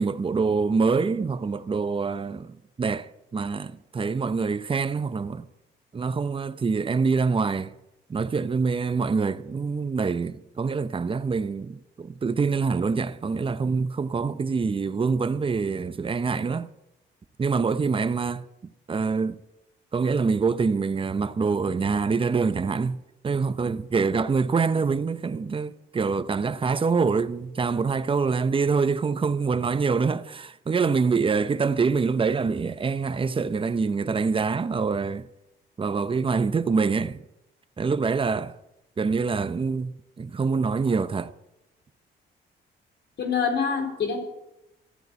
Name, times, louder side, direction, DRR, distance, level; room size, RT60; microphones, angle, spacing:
voice 1, 0.0-5.5 5.9-7.7 8.1-16.7 17.4-18.4 18.9-19.4 19.9-23.0 23.2-35.3 35.8-37.2 37.8-38.6 39.0-41.3, right 5 dB, 25° right, 0.7 m, -25 dB
voice 2, 43.2-44.2, left 6 dB, 60° left, 3.9 m, -25 dB
13.5 x 9.2 x 8.2 m
cardioid pair, 90°, 20 cm